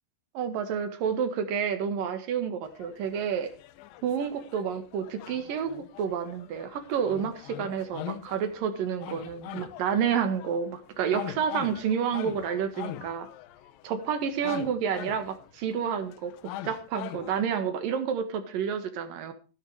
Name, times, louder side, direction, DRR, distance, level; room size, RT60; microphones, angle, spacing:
voice 1, 0.3-3.5 4.0-13.3 13.8-16.3 16.6-19.3, right 7 dB, 75° right, 8 dB, 3.4 m, -29 dB
sound 1, 2.7-8.6 9.0-17.4, left 12 dB, 85° left, 2.6 m, -42 dB
16.0 x 10.5 x 4.9 m, 0.36 s
omnidirectional pair, 4.0 m